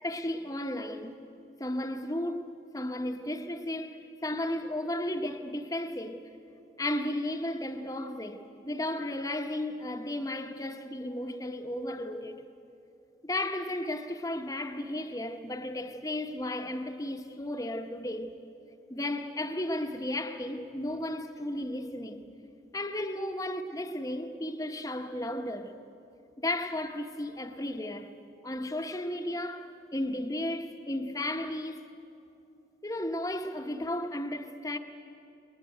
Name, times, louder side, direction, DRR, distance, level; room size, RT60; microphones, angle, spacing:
voice 1, 0.0-1.2 1.6-2.5 2.7-6.2 6.8-12.4 13.2-18.3 18.9-22.3 22.7-25.7 26.4-28.1 28.4-31.8 32.8-34.8, left 1 dB, 20° left, 1.1 m, -34 dB
21.5 x 20.0 x 9.3 m
head